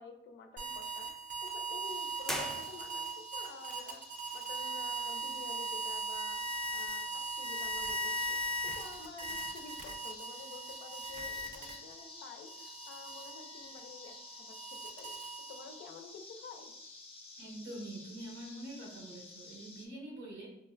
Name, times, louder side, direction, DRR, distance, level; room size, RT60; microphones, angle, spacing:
voice 1, 0.0-4.1 4.3-6.4 6.7-8.4 8.6-15.1 15.5-16.7, left 5 dB, 70° left, 6 dB, 0.5 m, -50 dB
sound 1, 0.6-12.0 12.5-15.8, right 2 dB, 40° right, 0.6 m, -39 dB
sound 2, 1.8-19.9, left 2 dB, 30° left, 0.7 m, -52 dB
sound 3, 2.2-3.3, equal, ahead, 0.3 m, -40 dB
voice 2, 17.4-20.5, right 1 dB, 85° right, -3 dB, 1.2 m, -45 dB
3.6 x 2.2 x 2.4 m, 0.85 s
cardioid pair, 90°, 20 cm